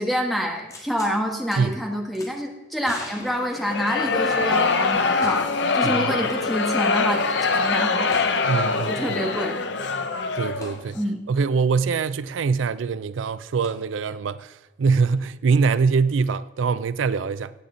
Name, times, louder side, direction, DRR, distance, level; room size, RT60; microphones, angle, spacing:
voice 1, 0.0-5.5 5.7-7.2 7.5-8.3 8.9-9.6 10.9-11.2, equal, ahead, 1.5 m, -27 dB
sound 1, 0.7-1.2 1.5-1.6 2.1-2.3 2.8-4.3 5.2-5.7 6.0-6.1 8.1-8.4 10.6-10.8 13.6-13.7, left 1 dB, 15° left, 1.9 m, -41 dB
sound 2, 3.6-10.8, left 4 dB, 70° left, 0.9 m, -23 dB
voice 2, 5.8-6.2 8.4-9.2 10.3-11.0 11.3-17.5, right 5 dB, 85° right, 0.4 m, -23 dB
16.5 x 8.4 x 3.9 m
head